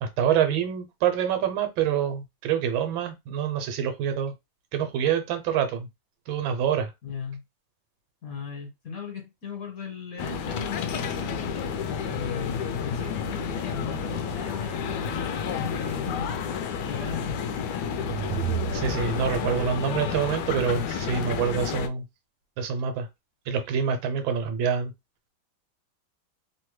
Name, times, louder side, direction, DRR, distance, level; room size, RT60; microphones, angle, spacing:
voice 1, 0.0-4.3 4.7-5.9 6.3-6.9 18.7-22.0 22.6-23.1 23.5-24.9, right 8 dB, 85° right, 1.4 m, -26 dB
voice 2, 7.0-7.4 8.2-11.4 12.0-16.3 16.8-17.6, left 5 dB, 55° left, 1.4 m, -37 dB
sound 1, 10.2-21.9, left 7 dB, 75° left, 1.0 m, -31 dB
sound 2, 17.9-19.8, right 8 dB, 65° right, 0.8 m, -33 dB
3.2 x 2.1 x 3.1 m
omnidirectional pair, 2.1 m